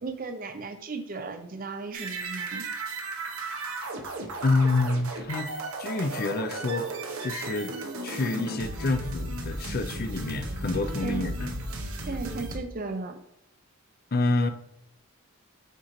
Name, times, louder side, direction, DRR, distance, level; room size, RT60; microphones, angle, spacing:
voice 1, 0.0-2.6 11.0-11.3 12.0-13.2, right 3 dB, 40° right, 0.5 m, -35 dB
sound 1, 1.9-12.6, right 2 dB, 75° right, 0.9 m, -35 dB
voice 2, 4.4-5.5 5.8-6.9 7.2-7.7 8.0-11.5 14.1-14.5, left 3 dB, 45° left, 0.5 m, -27 dB
8.1 x 3.1 x 3.8 m
head